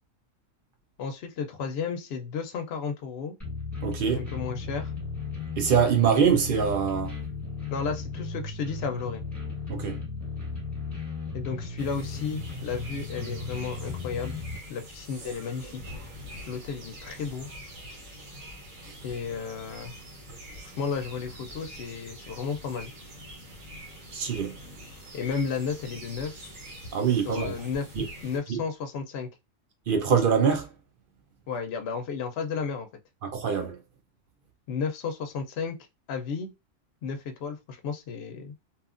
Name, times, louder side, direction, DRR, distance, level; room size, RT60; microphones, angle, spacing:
voice 1, 1.0-3.4 4.1-4.9 7.7-9.2 11.3-14.4 14.7-15.9 16.5-17.5 19.0-19.9 20.8-22.9 25.1-26.4 27.3-27.9 28.2-29.3 31.5-32.9 34.7-35.8 36.1-36.5 37.0-38.5, left 5 dB, 65° left, 0.7 m, -33 dB
sound 1, 3.4-14.6, left 4 dB, ahead, 1.1 m, -36 dB
voice 2, 3.8-4.3 5.6-7.2 9.7-10.0 18.8-19.0 24.1-24.6 26.9-27.6 28.0-28.1 28.5-28.6 29.9-30.7 33.2-33.8, right 7 dB, 55° right, 0.6 m, -24 dB
sound 2, 11.8-28.4, equal, 85° right, 1.3 m, -45 dB
2.8 x 2.4 x 2.4 m
omnidirectional pair, 1.3 m